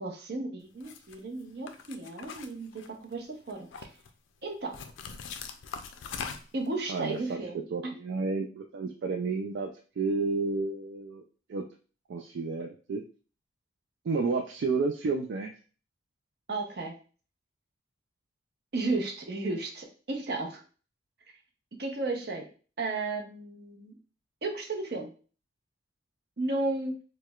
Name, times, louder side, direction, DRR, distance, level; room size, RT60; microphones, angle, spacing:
voice 1, 0.0-2.7 3.0-3.7 4.4-4.8 6.5-7.9 16.5-16.9 18.7-20.6 21.8-22.4 22.8-23.9 24.4-25.1 26.4-26.9, right 2 dB, 55° right, 2 dB, 0.7 m, -33 dB
sound 1, 0.8-1.1 1.7-3.1 3.5-4.1 4.7-6.7, left 6 dB, 85° left, 0.4 m, -41 dB
voice 2, 6.9-7.4 7.7-11.2 11.5-11.6 12.1-13.0 14.0-15.5, right 4 dB, 70° right, 3 dB, 0.3 m, -31 dB
4.6 x 2.1 x 2.3 m, 0.39 s
head